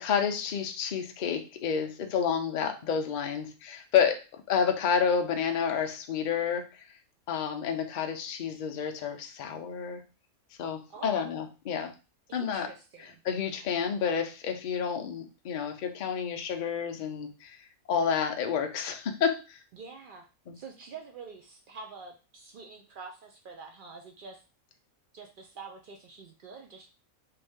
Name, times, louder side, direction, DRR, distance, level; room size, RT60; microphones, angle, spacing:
voice 1, 0.0-6.7 7.3-10.0 10.6-11.9 12.3-12.7 13.2-17.6 17.9-19.6 20.5-20.6, left 7 dB, 65° left, 5 dB, 0.4 m, -29 dB
voice 2, 10.9-11.4 12.3-13.2 19.7-20.3 20.5-24.4 25.1-26.9, right 4 dB, 90° right, 2 dB, 0.4 m, -46 dB
3.3 x 2.7 x 3.5 m, 0.31 s
omnidirectional pair, 1.5 m